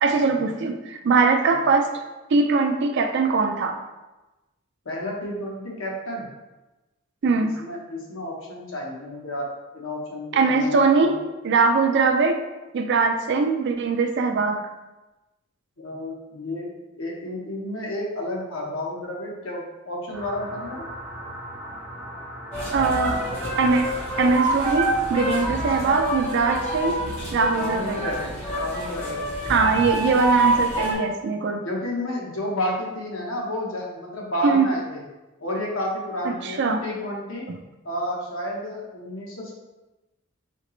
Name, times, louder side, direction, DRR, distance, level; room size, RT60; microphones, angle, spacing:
voice 1, 0.0-2.0 2.3-3.8 7.2-7.6 10.3-11.2 11.4-12.4 12.7-14.6 22.7-23.2 23.6-23.9 24.2-27.0 27.3-28.1 29.5-31.6 34.4-34.7 36.3-36.8 37.5-37.6, right 4 dB, 55° right, 6 dB, 0.4 m, -21 dB
voice 2, 4.8-6.3 7.4-9.5 9.7-11.1 15.8-16.7 17.0-20.9 22.8-23.4 27.5-29.3 31.6-35.0 35.4-37.5 37.8-39.5, left 1 dB, 70° left, -3 dB, 1.0 m, -31 dB
sound 1, 20.1-25.5, equal, 5° right, 1.1 m, -38 dB
sound 2, 22.5-30.9, right 1 dB, 30° left, 1.2 m, -26 dB
4.2 x 2.9 x 3.1 m, 1.1 s
head